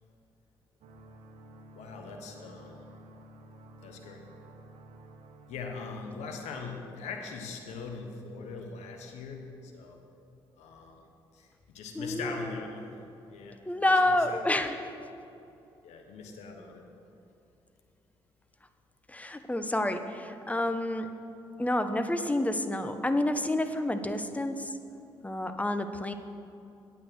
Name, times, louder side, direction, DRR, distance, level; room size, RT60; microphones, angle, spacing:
sound 1, 0.8-6.2, right 1 dB, 65° right, 1.1 m, -52 dB
voice 1, 1.8-2.9 3.8-4.3 5.5-10.0 10.6-11.0 11.3-13.6 14.1-14.4 15.8-16.9, left 4 dB, 70° left, 3 dB, 1.1 m, -41 dB
voice 2, 11.9-12.5 13.7-14.8 19.1-21.1 21.6-24.7 25.2-26.1, left 1 dB, 10° left, 8 dB, 0.9 m, -29 dB
8.9 x 8.4 x 6.3 m, 2.7 s
hypercardioid pair, 45°, 12 cm